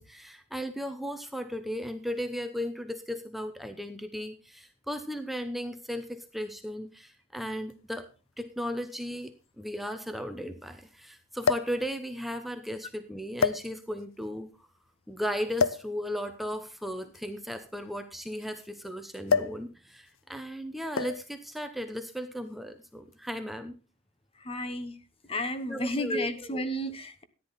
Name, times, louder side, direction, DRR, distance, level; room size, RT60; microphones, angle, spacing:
voice 1, 0.0-8.1 8.4-14.5 15.1-23.7 25.7-26.3, equal, ahead, 7 dB, 0.8 m, -36 dB
sound 1, 7.7-7.8 8.9-9.0 9.2-9.3 11.4-11.8 12.6-12.8 13.4-14.1 15.6-15.9 17.0-18.7 19.3-19.7 19.9-20.2 21.0-21.3 22.3-22.6, left 5 dB, 80° left, 0.6 m, -28 dB
voice 2, 24.4-25.0 25.3-27.2, equal, 30° left, 11 dB, 1.1 m, -32 dB
14.0 x 10.0 x 4.1 m, 0.32 s
head